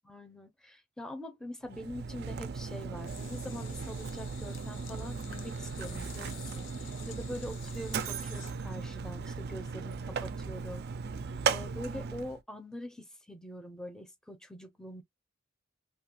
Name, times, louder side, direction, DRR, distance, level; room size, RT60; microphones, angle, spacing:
voice 1, 0.1-6.7 7.1-10.9 11.5-15.0, left 1 dB, 5° left, 0.6 m, -44 dB
Mechanisms, 1.6-12.4, right 5 dB, 50° right, 0.4 m, -37 dB
sound 1, 3.1-8.5, left 10 dB, 65° left, 0.5 m, -51 dB
2.8 x 2.3 x 2.8 m
head